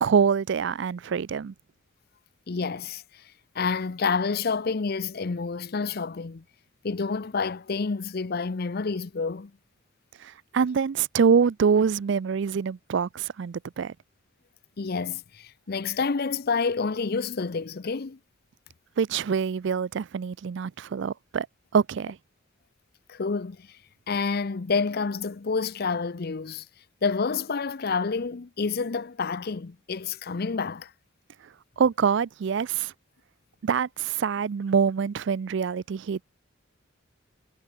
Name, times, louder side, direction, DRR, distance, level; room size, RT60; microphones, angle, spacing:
voice 1, 0.0-1.5 10.2-13.9 19.0-21.5 21.7-22.2 31.8-32.9 33.6-36.2, right 6 dB, 60° right, 0.4 m, -25 dB
voice 2, 2.5-3.2 3.5-6.4 6.8-9.5 14.8-18.2 23.1-23.8 24.1-26.7 27.0-30.9, left 4 dB, 50° left, 0.6 m, -29 dB
head